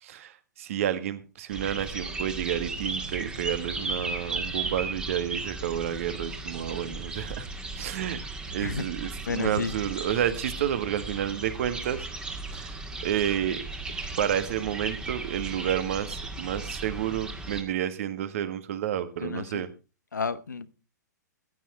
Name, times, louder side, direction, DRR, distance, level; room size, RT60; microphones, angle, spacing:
voice 1, 0.0-7.5 7.7-8.2 8.5-12.1 12.5-13.6 14.2-19.7, right 10 dB, 45° right, 1.5 m, -30 dB
sound 1, 1.5-17.6, right 3 dB, 10° right, 1.8 m, -36 dB
voice 2, 9.3-9.7 19.2-19.7 20.1-20.7, left 5 dB, 70° left, 1.0 m, -31 dB
15.5 x 9.4 x 4.3 m
figure-of-eight pair, 110°, 10 cm